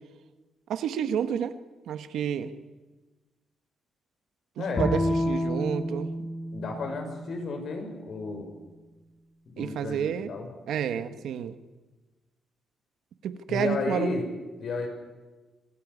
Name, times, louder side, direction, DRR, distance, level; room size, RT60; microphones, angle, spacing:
voice 1, 0.7-1.6 1.9-2.5 4.6-6.3 9.6-10.3 10.7-11.5 13.2-14.2, right 8 dB, 85° right, 11 dB, 1.4 m, -30 dB
voice 2, 4.6-4.9 6.5-8.5 9.6-10.5 10.9-11.0 13.5-14.3 14.6-14.9, left 4 dB, 65° left, 5 dB, 6.0 m, -32 dB
Bowed string instrument, 4.8-8.0, left 1 dB, 35° left, 3.6 m, -30 dB
25.5 x 15.5 x 9.7 m, 1.2 s
cardioid pair, 110°, 0 cm